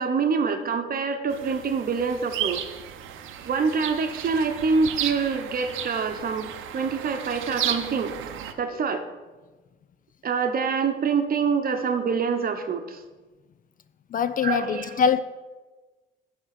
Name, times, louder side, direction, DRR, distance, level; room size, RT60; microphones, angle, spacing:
voice 1, 0.0-2.7 3.5-8.2 8.6-9.0 10.2-13.0 14.4-15.0, right 5 dB, 50° right, 0.9 m, -26 dB
sound 1, 1.3-8.5, right 10 dB, 85° right, 0.6 m, -34 dB
voice 2, 14.1-15.2, left 7 dB, 45° left, 0.4 m, -23 dB
9.6 x 3.6 x 5.9 m
cardioid pair, 90°, 20 cm